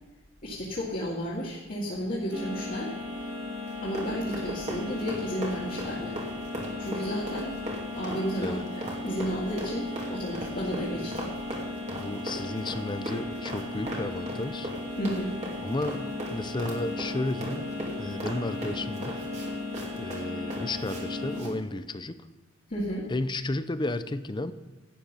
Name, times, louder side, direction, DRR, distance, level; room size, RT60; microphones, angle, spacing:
voice 1, 0.4-2.9 3.8-6.2 6.8-7.6 7.9-11.3 15.0-15.4 22.7-23.1, equal, 45° left, -7 dB, 2.1 m, -32 dB
sound 1, 2.3-21.4, left 2 dB, 70° right, 3.7 m, -36 dB
Run, 3.7-21.0 21.3-21.5, right 1 dB, 40° right, 2.6 m, -38 dB
voice 2, 11.9-14.7 15.6-16.0 16.3-17.7 18.0-19.2 19.9-22.3 23.1-24.5, left 2 dB, 25° left, 12 dB, 0.6 m, -33 dB
11.5 x 8.9 x 5.5 m, 1.2 s
head